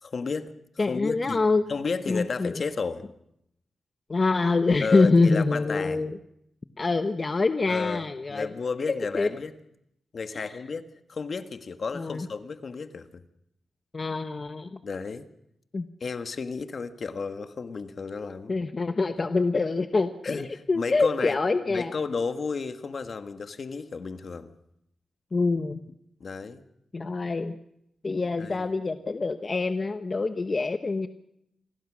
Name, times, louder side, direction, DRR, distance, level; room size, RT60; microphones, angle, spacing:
voice 1, 0.0-1.4 1.7-3.0 4.8-6.1 7.7-9.5 10.1-13.2 14.8-15.3 16.0-18.6 20.2-20.5 20.7-21.4 21.7-24.5 26.2-26.6 28.4-28.7, left 4 dB, 55° left, 9 dB, 1.6 m, -32 dB
voice 2, 0.8-1.6 2.1-2.5 4.1-6.2 6.8-8.5 8.9-9.3 10.3-10.5 11.9-12.3 13.9-14.8 15.7-15.9 18.5-20.4 20.7-21.9 25.3-25.8 26.9-27.6 28.0-31.1, left 3 dB, 35° left, 9 dB, 1.0 m, -25 dB
28.5 x 21.5 x 6.3 m, 0.78 s
wide cardioid pair, 105°, 0 cm